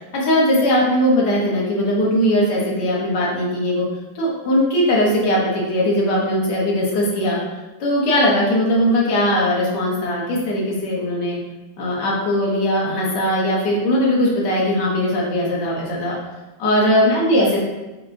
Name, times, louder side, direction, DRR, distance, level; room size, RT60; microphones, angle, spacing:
voice 1, 0.1-3.9 4.1-7.4 7.8-11.4 11.8-16.2 16.6-17.6, equal, 75° left, -4 dB, 1.6 m, -19 dB
6.4 x 2.2 x 2.6 m, 1.1 s
omnidirectional pair, 1.9 m